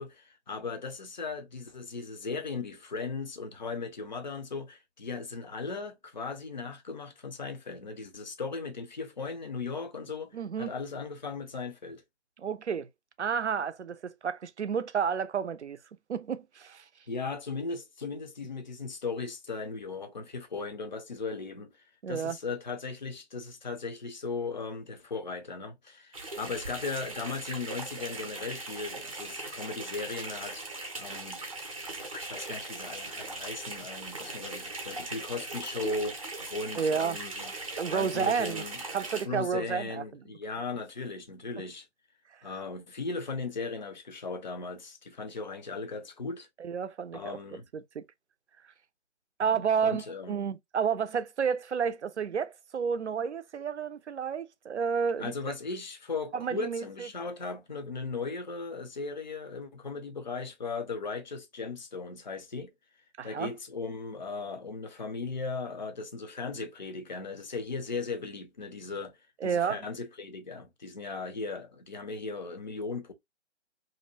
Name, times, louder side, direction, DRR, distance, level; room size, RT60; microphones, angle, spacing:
voice 1, 0.0-12.0 17.1-30.6 31.0-31.4 32.1-36.2 36.5-37.5 37.9-38.8 39.2-41.9 42.4-46.5 47.1-47.6 49.4-50.4 55.2-62.7 63.2-69.2 69.4-73.1, left 4 dB, 40° left, 0.4 m, -37 dB
voice 2, 10.3-10.7 12.4-12.9 13.2-15.8 16.1-16.8 22.0-22.4 36.8-37.2 37.8-38.6 38.9-40.2 46.6-47.3 47.9-48.0 49.4-55.3 56.3-56.8 63.2-63.5 69.4-69.8, right 6 dB, 70° right, 0.5 m, -30 dB
sound 1, 26.1-39.3, right 2 dB, 30° right, 0.6 m, -39 dB
2.6 x 2.1 x 2.7 m
figure-of-eight pair, 150°, 35 cm